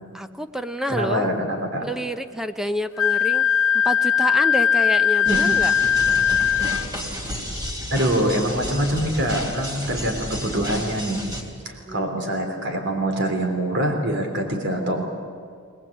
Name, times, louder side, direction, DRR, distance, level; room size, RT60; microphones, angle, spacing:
voice 1, 0.1-1.3 1.8-3.5 3.7-5.7 11.9-12.1, equal, ahead, 9 dB, 0.7 m, -28 dB
voice 2, 0.9-1.9 5.2-5.4 7.9-11.2 11.7-15.0, right 1 dB, 55° right, 4 dB, 3.5 m, -24 dB
Wind instrument woodwind instrument, 3.0-6.8, left 8 dB, 85° left, 0.5 m, -19 dB
sound 1, 5.2-11.4, equal, 20° right, 3.4 m, -32 dB
23.0 x 20.0 x 8.7 m, 2.2 s
head